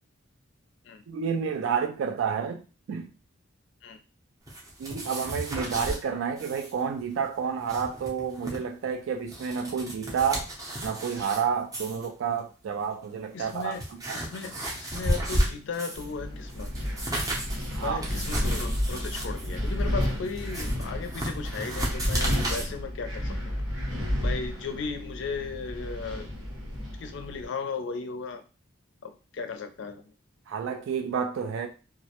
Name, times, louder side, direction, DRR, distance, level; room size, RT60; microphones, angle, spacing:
voice 1, 1.1-2.6 2.9-3.1 4.8-10.5 10.8-13.8 14.1-14.2 17.7-18.0 30.5-31.7, right 6 dB, 70° right, 0.3 m, -30 dB
sound 1, 4.5-6.0 6.4-6.7 7.0-7.1 7.5-8.6 9.1-11.4 11.7-12.1 12.8-12.9 13.4-16.1 16.5-22.7, right 1 dB, 15° right, 0.5 m, -33 dB
voice 2, 13.3-13.8 14.1-16.7 17.8-23.6 24.2-26.3 27.0-28.4 29.0-30.0, left 4 dB, 60° left, 0.4 m, -36 dB
Wind, 15.9-27.5, equal, 90° right, 1.1 m, -31 dB
2.3 x 2.0 x 2.8 m
head